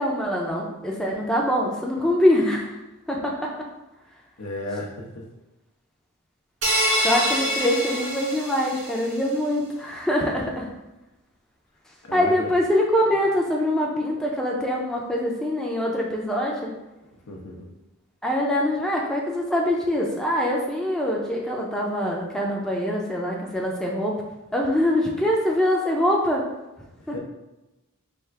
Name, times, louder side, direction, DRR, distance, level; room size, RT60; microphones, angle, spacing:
voice 1, 0.0-2.8 3.1-3.5 7.0-10.7 12.1-16.7 18.2-24.2 24.5-26.4 27.1-27.2, left 1 dB, 5° left, -2 dB, 0.5 m, -24 dB
voice 2, 4.4-5.2 12.0-12.5 17.3-17.7 27.1-27.2, left 1 dB, 85° left, 0 dB, 0.8 m, -34 dB
sound 1, 6.6-9.1, equal, 80° right, 1.4 m, -25 dB
3.5 x 2.4 x 4.5 m, 1.0 s
head